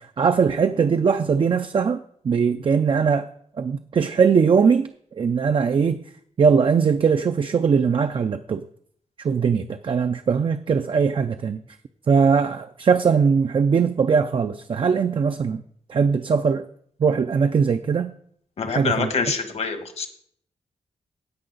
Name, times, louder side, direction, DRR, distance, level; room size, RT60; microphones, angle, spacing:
voice 1, 0.0-2.0 2.2-3.3 3.6-6.0 6.4-8.6 9.2-11.6 12.1-15.6 15.9-16.6 17.0-18.1 18.7-19.1, right 6 dB, 45° right, 8 dB, 0.4 m, -20 dB
voice 2, 18.6-20.1, left 5 dB, 55° left, 8 dB, 1.3 m, -25 dB
16.0 x 5.5 x 4.0 m, 0.63 s
wide cardioid pair, 140°, 13 cm